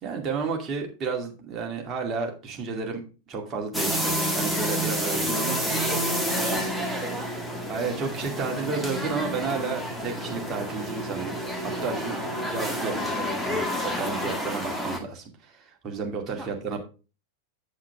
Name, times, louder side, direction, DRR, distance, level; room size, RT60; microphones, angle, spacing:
voice 1, 0.0-3.0 3.3-5.6 6.6-6.7 7.7-11.4 11.8-12.1 12.5-16.8, right 4 dB, 30° right, 1 dB, 2.4 m, -32 dB
sound 1, 3.7-15.0, equal, 5° left, 1.8 m, -29 dB
sound 2, 5.1-13.0, right 1 dB, 45° left, 4.0 m, -38 dB
voice 2, 5.7-7.3 11.9-12.0 12.6-12.9 16.3-16.5, right 2 dB, 15° right, 0 dB, 1.5 m, -37 dB
8.3 x 7.5 x 3.5 m, 0.33 s
figure-of-eight pair, 90°, 0 cm